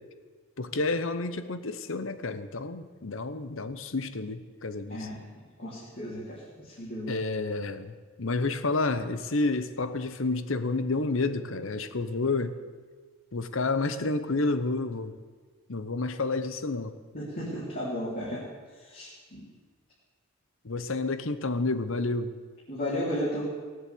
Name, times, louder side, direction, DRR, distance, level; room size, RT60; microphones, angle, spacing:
voice 1, 0.6-5.1 7.1-12.6 13.3-15.1 15.7-16.9 20.6-22.3, left 3 dB, 60° left, 12 dB, 0.9 m, -30 dB
voice 2, 5.6-7.2 17.1-18.4 18.8-19.4 22.7-23.4, equal, 40° left, -7 dB, 3.5 m, -34 dB
18.5 x 8.1 x 8.5 m, 1.5 s
head